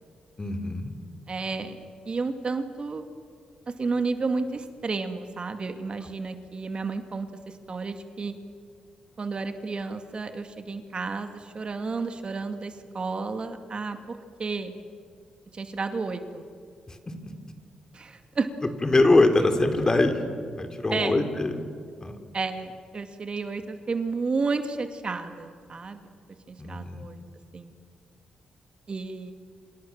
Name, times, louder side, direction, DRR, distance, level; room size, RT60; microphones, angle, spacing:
voice 1, 0.4-0.9 16.9-17.0 17.2-17.3 18.8-20.2 20.6-21.6 22.0-22.2 26.6-27.1, left 2 dB, 30° left, 7 dB, 3.5 m, -23 dB
voice 2, 1.3-1.8 2.1-3.0 3.7-8.3 9.2-14.7 15.5-16.5 17.9-18.5 20.9-21.2 22.3-26.0 26.5-27.2 27.5-27.7 28.9-29.3, right 4 dB, 45° right, 7 dB, 2.3 m, -31 dB
27.5 x 27.0 x 7.4 m, 2.1 s
cardioid pair, 65°, 2 cm